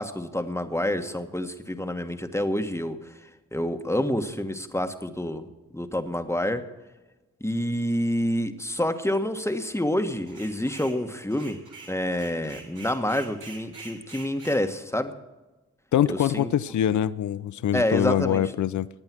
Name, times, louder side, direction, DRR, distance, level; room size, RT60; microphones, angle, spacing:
voice 1, 0.0-3.1 3.5-5.5 5.7-6.6 7.4-11.6 11.9-15.1 16.1-16.5 17.7-18.4, left 1 dB, 10° left, 1.4 m, -28 dB
sound 1, 10.3-11.0 11.3-14.6, right 3 dB, 90° right, 3.2 m, -45 dB
voice 2, 15.9-18.9, left 10 dB, 75° left, 0.5 m, -24 dB
19.5 x 8.7 x 6.1 m
cardioid pair, 50°, 30 cm